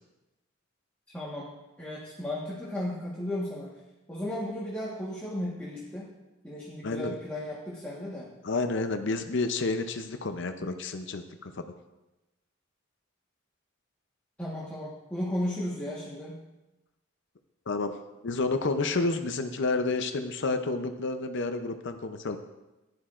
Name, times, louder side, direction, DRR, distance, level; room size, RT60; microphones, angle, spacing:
voice 1, 1.1-1.5 1.8-3.7 4.1-6.1 6.4-8.3 14.4-16.4, left 1 dB, 5° left, -7 dB, 1.3 m, -35 dB
voice 2, 6.8-7.1 8.4-11.6 17.7-17.9 18.2-22.4, left 3 dB, 60° left, 7 dB, 0.6 m, -30 dB
15.5 x 11.0 x 2.5 m, 1.0 s
head